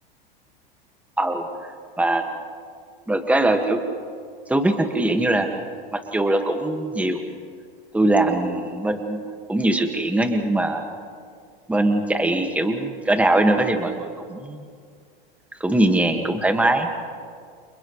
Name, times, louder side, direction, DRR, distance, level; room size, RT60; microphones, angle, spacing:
voice 1, 1.2-1.7 2.0-2.3 3.1-3.8 4.5-5.7 5.9-7.2 7.9-9.2 9.5-10.8 11.7-14.6 15.6-16.9, right 1 dB, 5° right, 5 dB, 1.9 m, -21 dB
29.5 x 29.5 x 3.3 m, 2.1 s
hypercardioid pair, 100°, 29 cm